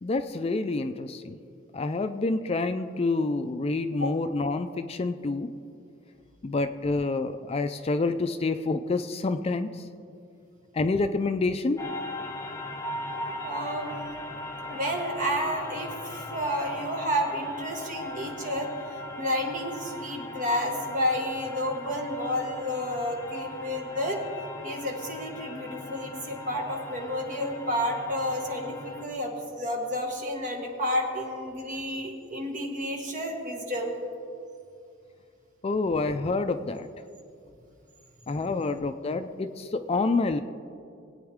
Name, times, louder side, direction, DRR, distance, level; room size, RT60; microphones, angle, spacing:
voice 1, 0.0-1.4 1.7-5.5 6.4-9.9 10.7-11.8 35.6-36.9 38.3-40.4, left 3 dB, 30° left, 9 dB, 0.4 m, -28 dB
sound 1, 11.8-29.1, left 2 dB, 15° left, 0.9 m, -39 dB
voice 2, 13.2-13.9 14.7-24.2 24.6-33.9, equal, 40° right, 0 dB, 1.8 m, -31 dB
21.0 x 8.8 x 3.6 m, 2.4 s
head